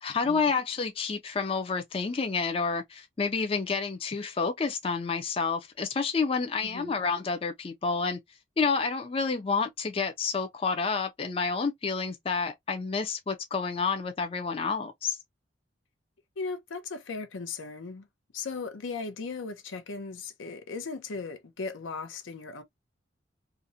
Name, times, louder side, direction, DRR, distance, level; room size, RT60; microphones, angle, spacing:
voice 1, 0.0-8.2 8.6-15.2, left 4 dB, 30° left, 0.3 m, -29 dB
voice 2, 6.6-6.9 16.4-18.1 18.3-22.6, left 4 dB, 85° left, 0.6 m, -37 dB
2.5 x 2.0 x 2.6 m
head